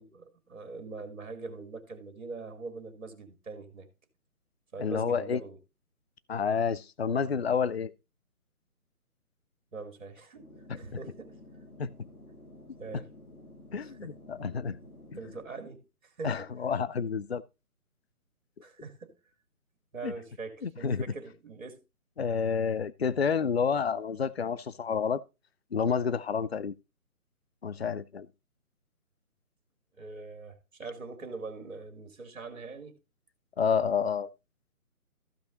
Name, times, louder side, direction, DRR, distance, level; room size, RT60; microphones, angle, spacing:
voice 1, 0.0-3.9 4.7-5.6 9.7-10.4 10.8-11.3 12.8-13.1 13.8-14.1 15.2-16.3 18.6-19.1 19.9-21.8 30.0-32.9, right 3 dB, 55° right, 2.7 m, -42 dB
voice 2, 4.8-5.4 6.3-7.9 10.7-10.8 11.8-11.9 13.7-14.8 15.1-15.2 16.2-17.4 20.0-20.1 20.6-21.0 22.2-25.2 25.7-26.8 27.6-28.3 33.6-34.3, left 6 dB, 45° left, 0.5 m, -29 dB
sound 1, 10.4-15.4, left 2 dB, 80° left, 2.7 m, -52 dB
14.5 x 5.5 x 4.0 m
figure-of-eight pair, 145°, 44 cm